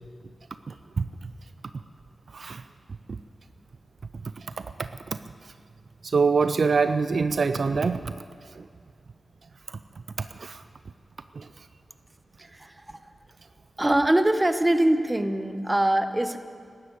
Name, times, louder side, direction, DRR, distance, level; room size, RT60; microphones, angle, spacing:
voice 1, 0.7-1.3 2.3-2.6 3.1-3.2 4.2-5.2 5.4-5.5 6.0-8.1 8.4-8.7 9.7-9.8 10.2-10.6 11.3-11.7, right 4 dB, 65° right, 11 dB, 0.4 m, -26 dB
voice 2, 12.4-13.1 13.8-16.4, right 1 dB, 20° right, 10 dB, 1.0 m, -23 dB
12.5 x 12.0 x 8.3 m, 2.2 s
cardioid pair, 50°, 0 cm